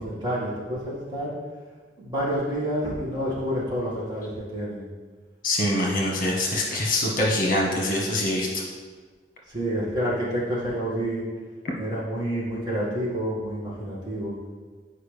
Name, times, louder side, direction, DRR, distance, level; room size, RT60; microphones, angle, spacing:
voice 1, 0.0-1.3 2.0-4.8 9.5-11.2 11.8-14.3, equal, 25° right, -7 dB, 2.1 m, -28 dB
voice 2, 5.4-8.6, left 1 dB, 50° left, -2 dB, 1.3 m, -24 dB
9.2 x 4.9 x 3.4 m, 1.4 s
head